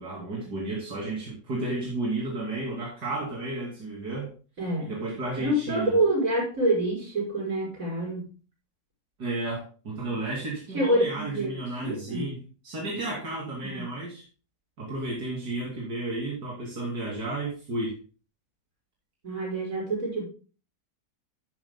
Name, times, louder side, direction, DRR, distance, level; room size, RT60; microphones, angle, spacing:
voice 1, 0.0-4.3 4.8-5.9 9.2-12.4 12.6-14.2 14.8-18.0, right 2 dB, 90° right, -4 dB, 3.4 m, -32 dB
voice 2, 4.6-4.9 5.4-8.3 10.7-12.3 13.6-13.8 19.2-20.2, right 1 dB, 55° right, -2 dB, 6.1 m, -27 dB
13.0 x 9.7 x 2.2 m, 0.35 s
omnidirectional pair, 1.7 m